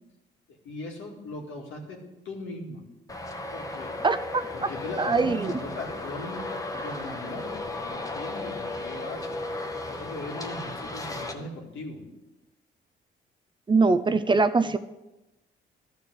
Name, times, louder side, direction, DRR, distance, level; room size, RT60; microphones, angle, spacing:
voice 1, 0.6-2.8 3.5-4.0 4.5-6.5 6.8-9.4 9.9-12.1, left 2 dB, 80° left, 0 dB, 2.3 m, -39 dB
Traffic noise roadway noise, 3.1-11.3, left 2 dB, 15° left, 1.1 m, -35 dB
voice 2, 4.0-4.7 5.0-5.5 13.7-14.8, right 4 dB, 25° right, 11 dB, 0.5 m, -23 dB
12.0 x 4.5 x 7.8 m, 1.0 s
cardioid pair, 90°, 20 cm